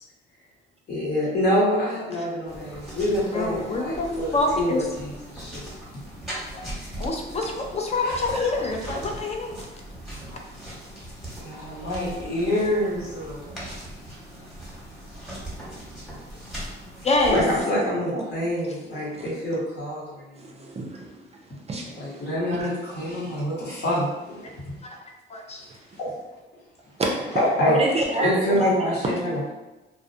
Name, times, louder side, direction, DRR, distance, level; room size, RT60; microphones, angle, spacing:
voice 1, 0.9-5.6 8.0-8.2 11.4-13.4 17.3-20.3 22.0-24.5 27.3-27.8 28.2-29.5, left 1 dB, 55° left, -6 dB, 1.1 m, -26 dB
sound 1, 2.5-17.6, right 1 dB, ahead, 1.0 m, -39 dB
voice 2, 3.3-4.8 6.5-6.7 7.0-9.6 17.0-17.4 24.8-25.0 25.3-25.6, left 2 dB, 35° left, 2 dB, 0.5 m, -26 dB
voice 3, 17.8-18.2 19.1-19.2 20.4-21.2 21.7-22.3 22.6-22.7 27.7-28.6 29.0-29.3, right 2 dB, 30° right, -1 dB, 0.4 m, -30 dB
2.3 x 2.1 x 2.7 m, 1.1 s
cardioid pair, 90°, 20 cm